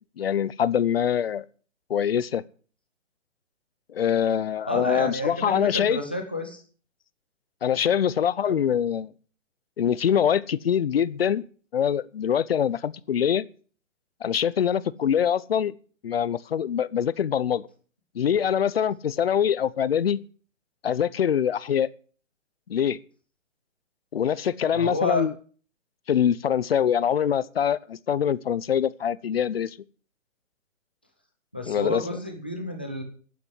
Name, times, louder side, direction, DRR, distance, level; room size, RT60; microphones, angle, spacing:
voice 1, 0.2-1.4 1.9-2.4 4.0-6.0 7.6-9.1 9.8-11.4 11.7-13.4 14.2-15.7 16.0-17.6 18.2-20.2 20.8-21.9 22.7-23.0 24.1-25.3 26.1-27.8 28.1-29.7 31.7-32.0, left 8 dB, 50° left, 0.8 m, -24 dB
voice 2, 4.6-6.6 7.9-8.0 8.4-8.7 24.4-25.3 31.5-33.0, left 1 dB, 10° left, 0.5 m, -30 dB
12.0 x 8.8 x 8.2 m
hypercardioid pair, 170°, 39 cm